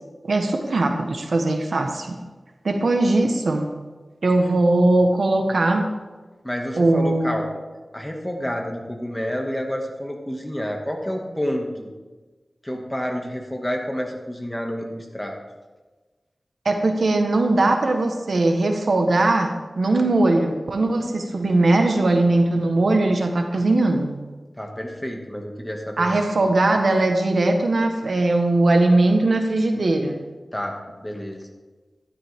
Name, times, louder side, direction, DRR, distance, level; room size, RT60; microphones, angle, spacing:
voice 1, 0.3-2.2 2.6-3.7 4.2-5.9 6.8-7.5 16.6-24.2 26.0-30.2, right 2 dB, 85° right, 4 dB, 1.3 m, -20 dB
voice 2, 6.4-7.6 7.9-11.9 12.6-15.4 24.6-26.4 30.5-31.4, equal, 15° left, 2 dB, 2.0 m, -29 dB
13.0 x 12.5 x 3.6 m, 1.3 s
wide cardioid pair, 50°, 0 cm